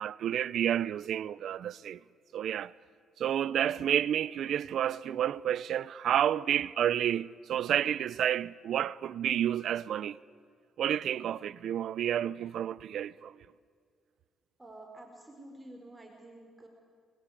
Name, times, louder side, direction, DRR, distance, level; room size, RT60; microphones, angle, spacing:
voice 1, 0.0-2.0 2.3-2.7 3.2-10.2 10.8-13.4, right 10 dB, 70° right, 0.7 m, -30 dB
voice 2, 14.6-16.7, right 1 dB, 15° right, 4.5 m, -49 dB
28.5 x 23.5 x 8.5 m
cardioid pair, 90°, 0 cm